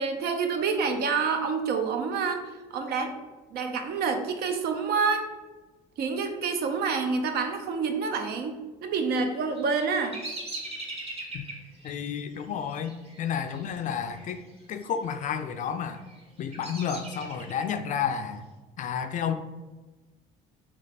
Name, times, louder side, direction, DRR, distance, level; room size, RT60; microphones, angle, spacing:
voice 1, 0.0-3.1 3.5-5.3 6.0-10.2, right 5 dB, 70° right, 6 dB, 0.6 m, -28 dB
Bird vocalization bird call bird song, 9.3-14.4 14.6-15.2 15.8-17.8, right 2 dB, 35° right, 1.0 m, -41 dB
voice 2, 11.8-14.4 14.7-16.0 16.4-18.4 18.8-19.3, left 7 dB, 50° left, 8 dB, 0.4 m, -31 dB
3.2 x 3.2 x 4.0 m, 1.2 s
cardioid pair, 110°, 17 cm